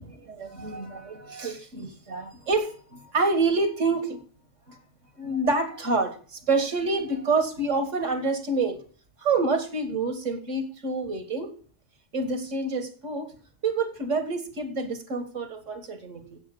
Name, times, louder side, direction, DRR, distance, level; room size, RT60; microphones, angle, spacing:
voice 1, 0.0-4.2 4.7-4.8 5.2-8.8 9.2-11.5 12.1-13.3 13.6-16.4, right 3 dB, 75° right, 8 dB, 2.1 m, -27 dB
8.4 x 7.8 x 8.4 m, 0.43 s
omnidirectional pair, 1.3 m